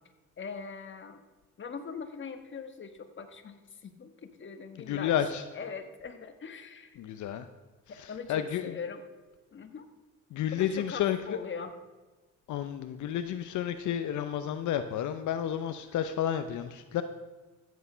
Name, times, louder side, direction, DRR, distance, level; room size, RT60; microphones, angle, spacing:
voice 1, 0.4-1.2 1.6-7.0 7.9-9.0 9.5-9.9 10.5-11.7, left 5 dB, 40° left, 7 dB, 1.4 m, -41 dB
voice 2, 4.9-5.4 7.0-7.5 8.0-8.7 10.3-11.4 12.5-17.0, left 10 dB, 75° left, 9 dB, 0.7 m, -31 dB
14.0 x 8.3 x 5.6 m, 1.3 s
cardioid pair, 90°, 30 cm